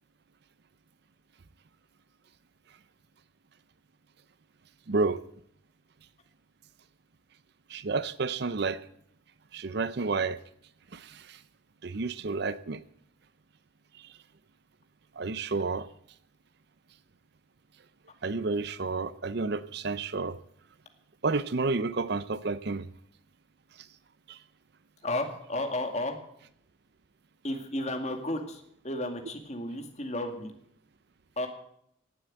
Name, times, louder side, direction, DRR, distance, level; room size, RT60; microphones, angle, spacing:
voice 1, 4.9-5.2 7.7-8.8 9.5-10.4 10.9-11.4 11.8-12.8 14.0-14.1 15.2-15.9 18.2-20.4 21.2-22.9 23.8-23.9 24.3-24.4, right 3 dB, 55° right, 15 dB, 0.6 m, -30 dB
voice 2, 25.0-26.2 27.4-30.5 31.4-31.5, left 1 dB, 35° left, 5 dB, 2.1 m, -33 dB
17.0 x 7.8 x 7.8 m, 0.71 s
head